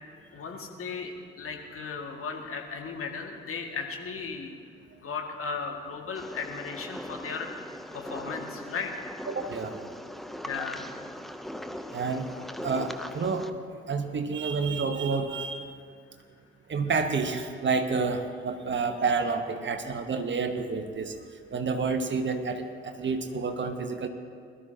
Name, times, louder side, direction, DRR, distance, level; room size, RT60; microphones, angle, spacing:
voice 1, 0.3-4.5 5.0-7.5 7.9-8.9 10.4-10.9, left 5 dB, 45° left, 2 dB, 2.1 m, -36 dB
sound 1, 6.1-13.5, equal, ahead, 0.8 m, -40 dB
voice 2, 9.3-9.8 11.9-12.3 12.6-13.5 13.9-15.7 16.7-21.1 21.5-24.1, right 4 dB, 35° right, 7 dB, 1.3 m, -29 dB
22.0 x 12.5 x 2.9 m, 2.2 s
figure-of-eight pair, 45°, 31 cm